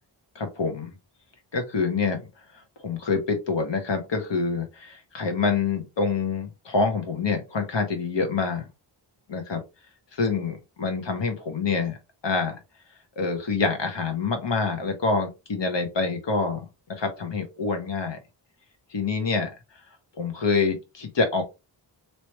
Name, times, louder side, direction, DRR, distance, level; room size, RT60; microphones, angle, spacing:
voice 1, 0.3-0.9 1.5-2.3 2.8-8.7 9.3-9.6 10.1-12.0 12.2-12.6 13.2-18.2 18.9-19.5 20.2-21.4, left 4 dB, 70° left, 5 dB, 1.3 m, -26 dB
3.2 x 3.0 x 2.9 m, 0.25 s
wide cardioid pair, 110°, 45 cm